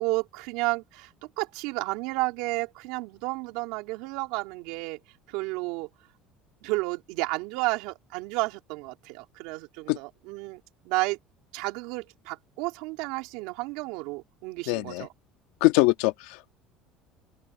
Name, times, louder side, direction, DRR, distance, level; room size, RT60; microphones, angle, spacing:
voice 1, 0.0-5.0 5.3-5.9 6.6-10.6 10.9-11.2 11.5-15.1, right 23 dB, 80° right, 3.7 m, -32 dB
voice 2, 14.7-15.1 15.6-16.5, left 21 dB, 85° left, 1.8 m, -23 dB
open air
cardioid pair, 130°, 0 cm